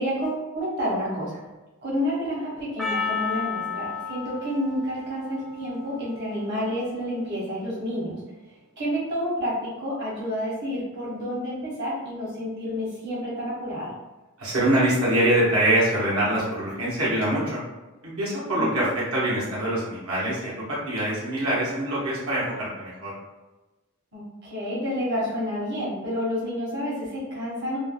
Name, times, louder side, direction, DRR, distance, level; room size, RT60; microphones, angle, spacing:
voice 1, 0.0-1.4 1.8-8.2 8.8-13.9 18.5-18.9 24.1-27.8, equal, 50° right, -6 dB, 0.9 m, -29 dB
Percussion, 2.8-7.3, left 6 dB, ahead, 0.3 m, -33 dB
voice 2, 14.4-17.6 18.0-23.1, right 1 dB, 80° right, -7 dB, 0.9 m, -24 dB
3.2 x 2.0 x 2.2 m, 1.1 s
head